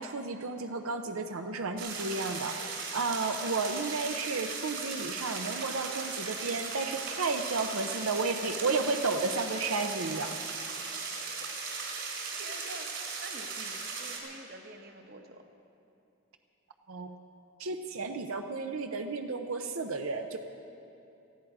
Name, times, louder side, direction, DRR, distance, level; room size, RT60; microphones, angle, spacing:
voice 1, 0.0-10.4 16.9-17.1 17.6-20.4, right 3 dB, 85° right, 6 dB, 0.8 m, -32 dB
sound 1, 1.8-14.2, right 4 dB, 65° right, 3.4 m, -38 dB
voice 2, 12.4-15.5, right 2 dB, 45° right, 5 dB, 1.1 m, -47 dB
18.5 x 14.0 x 4.8 m, 2.7 s
head